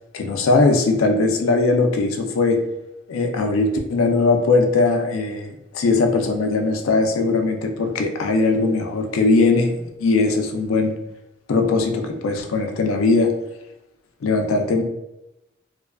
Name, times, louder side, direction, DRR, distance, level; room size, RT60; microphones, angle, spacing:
voice 1, 0.1-2.6 3.1-10.9 11.5-13.3 14.2-14.8, left 3 dB, 75° left, 5 dB, 0.4 m, -20 dB
2.5 x 2.3 x 2.2 m, 0.90 s
head